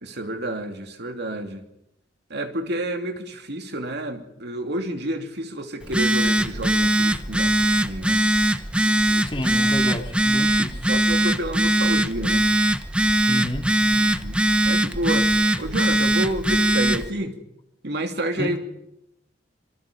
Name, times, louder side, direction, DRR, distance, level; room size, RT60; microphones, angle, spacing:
voice 1, 0.0-1.6 2.3-7.5 7.8-8.2 8.8-9.3 10.8-12.4 13.9-14.4 14.6-15.3 15.6-17.3 17.8-18.6, right 1 dB, 60° right, 2.8 m, -29 dB
Telephone, 5.8-17.1, right 1 dB, 5° right, 1.0 m, -21 dB
voice 2, 9.2-10.8 13.3-13.6 18.4-18.6, left 1 dB, 30° left, 3.3 m, -30 dB
27.0 x 23.5 x 5.3 m
head